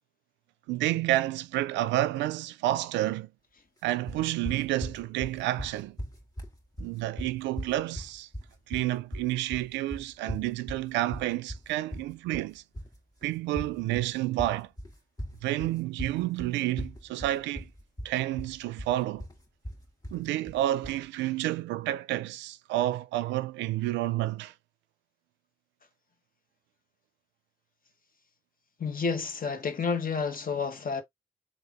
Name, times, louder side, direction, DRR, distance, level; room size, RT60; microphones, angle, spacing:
voice 1, 0.7-3.3 3.8-6.0 6.8-8.3 8.7-12.6 13.2-14.7 15.4-17.7 18.0-19.2 20.1-24.5, right 15 dB, 85° right, 0.4 m, -30 dB
sound 1, 4.1-21.0, equal, 20° left, 2.4 m, -40 dB
voice 2, 28.8-31.0, left 5 dB, 50° left, 1.3 m, -30 dB
3.8 x 2.4 x 4.2 m
supercardioid pair, 45°, 18 cm